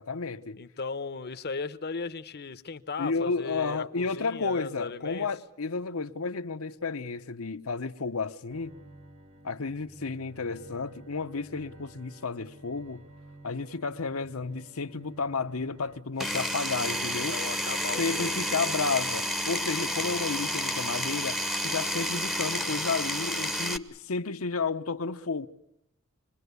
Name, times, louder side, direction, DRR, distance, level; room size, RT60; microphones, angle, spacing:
voice 1, 0.0-0.6 3.0-8.7 9.4-13.0 13.4-17.4 18.0-25.5, left 4 dB, 75° left, 1.0 m, -32 dB
voice 2, 0.6-5.3 17.3-18.3 19.8-20.2 22.6-22.8, left 4 dB, 50° left, 0.9 m, -37 dB
Bowed string instrument, 8.5-16.0, right 1 dB, 90° right, 4.7 m, -51 dB
Power tool, 16.2-23.8, equal, ahead, 0.9 m, -30 dB
26.5 x 21.5 x 8.2 m
head